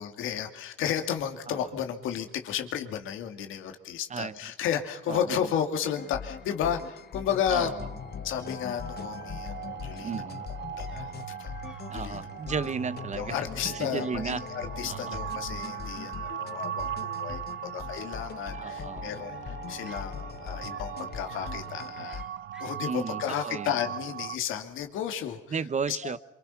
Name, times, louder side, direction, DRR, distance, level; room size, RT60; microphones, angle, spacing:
voice 1, 0.0-7.7 8.2-10.2 10.8-11.1 11.4-11.5 11.9-12.2 13.1-22.2 22.6-25.6 25.9-26.2, left 9 dB, 90° left, 2.5 m, -33 dB
voice 2, 5.1-5.5 7.5-7.9 10.0-10.4 11.9-13.4 13.6-14.4 14.9-15.2 18.5-19.1 22.9-23.8 25.5-26.2, right 5 dB, 35° right, 0.9 m, -34 dB
sound 1, 5.8-22.2, left 8 dB, 55° left, 1.1 m, -41 dB
sound 2, 7.7-24.4, right 10 dB, 70° right, 0.8 m, -39 dB
sound 3, 10.9-11.2 11.6-12.0 12.5-12.9 13.2-13.5 14.0-14.3 15.1-16.0 16.2-16.9 18.2-18.8 19.2-20.2 20.7-21.0 21.3-21.7 22.0-22.9, left 2 dB, 5° right, 3.5 m, -54 dB
27.0 x 25.0 x 5.8 m
cardioid pair, 90°, 20 cm